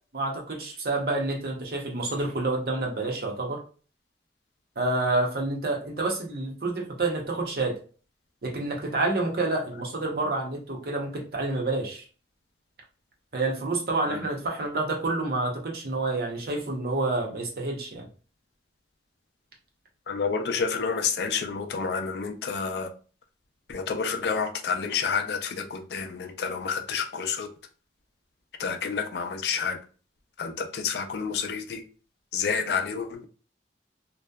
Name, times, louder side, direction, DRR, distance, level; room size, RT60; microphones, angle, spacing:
voice 1, 0.1-3.6 4.8-7.8 8.4-12.0 13.3-18.1, right 2 dB, 55° right, 0.7 m, -28 dB
voice 2, 20.1-22.9 23.7-27.5 28.6-29.8 30.4-31.8 32.3-33.3, left 5 dB, 65° left, 0.4 m, -29 dB
2.6 x 2.1 x 2.2 m
head